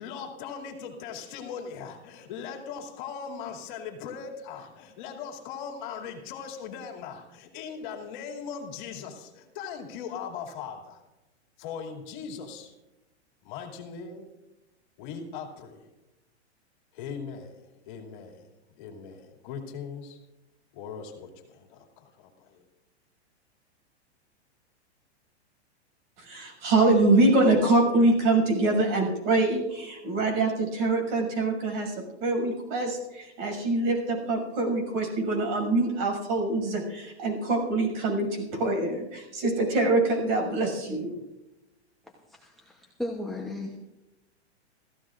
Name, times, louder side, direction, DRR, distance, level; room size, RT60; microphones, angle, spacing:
voice 1, 0.0-11.0 11.6-12.7 13.4-14.3 15.0-15.9 16.9-18.5 18.8-20.2 20.7-22.6, left 6 dB, 45° left, 1 dB, 2.6 m, -39 dB
voice 2, 26.2-41.1, right 2 dB, 45° right, 2 dB, 6.6 m, -24 dB
voice 3, 42.3-43.8, left 1 dB, ahead, -1 dB, 0.9 m, -36 dB
27.5 x 15.0 x 2.5 m, 1.0 s
hypercardioid pair, 155°, 34 cm